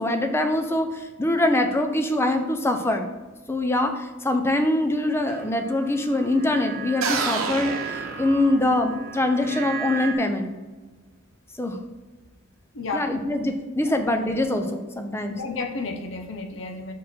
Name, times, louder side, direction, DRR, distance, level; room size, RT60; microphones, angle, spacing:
voice 1, 0.0-3.1 3.5-10.5 11.6-11.8 12.9-15.3, left 1 dB, 10° left, 6 dB, 0.5 m, -24 dB
sound 1, 5.3-10.1, right 6 dB, 40° right, 0.6 m, -37 dB
sound 2, 7.0-8.9, right 4 dB, 75° right, 0.9 m, -28 dB
voice 2, 12.7-13.2 13.8-13.9 15.3-16.9, left 3 dB, 60° left, 5 dB, 0.8 m, -32 dB
6.0 x 4.6 x 4.3 m, 1.3 s
head